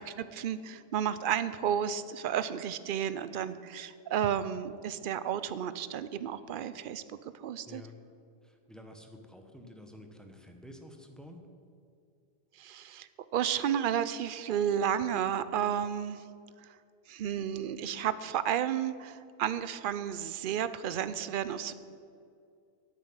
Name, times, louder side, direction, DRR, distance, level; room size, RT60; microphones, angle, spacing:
voice 1, 0.0-7.0 7.4-7.8 12.6-16.2 17.1-21.7, right 9 dB, 60° right, 14 dB, 0.7 m, -32 dB
voice 2, 7.7-8.0 8.4-11.4, left 1 dB, ahead, 4 dB, 1.0 m, -50 dB
10.0 x 7.4 x 8.9 m, 2.4 s
omnidirectional pair, 1.1 m